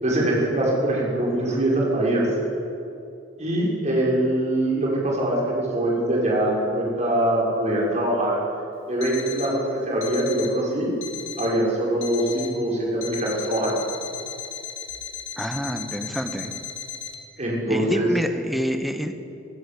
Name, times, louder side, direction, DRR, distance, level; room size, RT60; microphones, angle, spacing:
voice 1, 0.0-2.3 3.4-8.4 8.9-10.9 11.4-13.7 17.4-18.1, right 1 dB, 35° right, -4 dB, 5.8 m, -23 dB
Alarm, 9.0-9.6 10.0-10.6 11.0-11.6 12.0-12.6 13.0-17.1, left 7 dB, 85° left, 2.3 m, -36 dB
voice 2, 15.4-16.7 17.7-19.1, equal, ahead, 5 dB, 1.4 m, -28 dB
24.0 x 15.0 x 8.6 m, 2.7 s
head